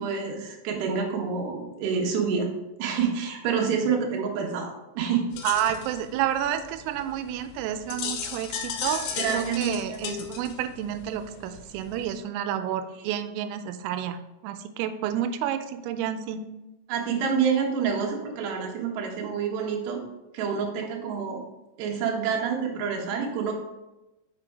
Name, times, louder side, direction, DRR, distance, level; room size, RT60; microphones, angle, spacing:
voice 1, 0.0-2.5 2.8-5.2 9.2-10.0 13.0-13.1 16.9-20.0 20.3-21.4 21.8-23.5, right 6 dB, 70° right, 0 dB, 3.0 m, -27 dB
sound 1, 5.3-12.2, left 7 dB, 75° left, 3.0 m, -36 dB
voice 2, 5.4-16.4, right 10 dB, 85° right, 9 dB, 3.2 m, -30 dB
6.8 x 6.7 x 3.6 m, 1.0 s
omnidirectional pair, 5.8 m